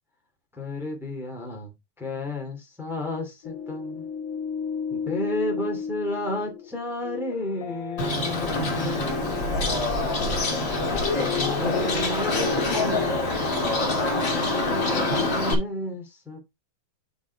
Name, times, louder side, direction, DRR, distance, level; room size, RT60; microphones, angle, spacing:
voice 1, 0.5-4.1 4.9-10.0 10.7-13.1 14.1-16.4, left 2 dB, ahead, 2.1 m, -32 dB
sound 1, 3.4-12.8, left 7 dB, 70° left, 2.9 m, -35 dB
Bird, 8.0-15.5, left 2 dB, 25° left, 2.1 m, -25 dB
7.1 x 4.9 x 4.6 m
omnidirectional pair, 3.9 m